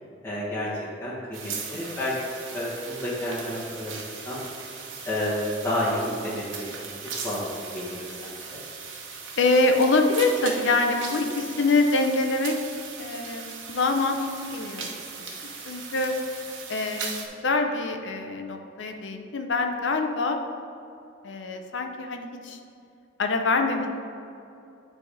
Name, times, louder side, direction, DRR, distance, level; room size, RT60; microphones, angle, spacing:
voice 1, 0.2-0.7 1.0-2.2 2.5-4.4 5.1-8.6, left 1 dB, 15° left, -9 dB, 1.2 m, -31 dB
sound 1, 1.3-17.3, right 5 dB, 90° right, 1.1 m, -38 dB
voice 2, 9.4-12.6 13.0-14.9 15.2-15.3 15.7-16.1 16.7-20.4 21.2-22.6 23.2-23.9, left 3 dB, 70° left, 5 dB, 0.6 m, -25 dB
9.6 x 3.5 x 4.8 m, 2.7 s
head